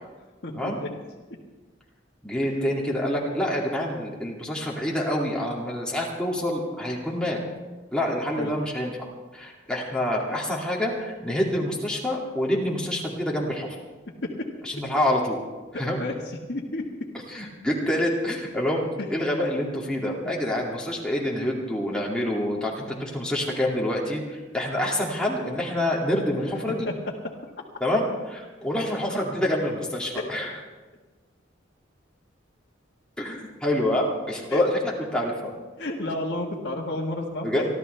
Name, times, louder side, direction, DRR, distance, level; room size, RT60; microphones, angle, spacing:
voice 1, 0.4-0.9 8.4-8.5 14.2-14.3 15.7-16.1 16.5-16.8 19.0-19.1 19.3-19.4 26.7-26.9 27.6-27.7 30.1-30.2 34.5-34.6 35.8-37.7, left 1 dB, 60° left, -4 dB, 1.6 m, -31 dB
voice 2, 2.2-7.4 7.9-13.7 14.6-15.4 15.7-16.0 17.3-26.9 27.8-30.5 33.2-35.5 37.4-37.6, left 1 dB, 5° left, -4 dB, 2.4 m, -27 dB
28.0 x 12.0 x 3.4 m, 1.3 s
head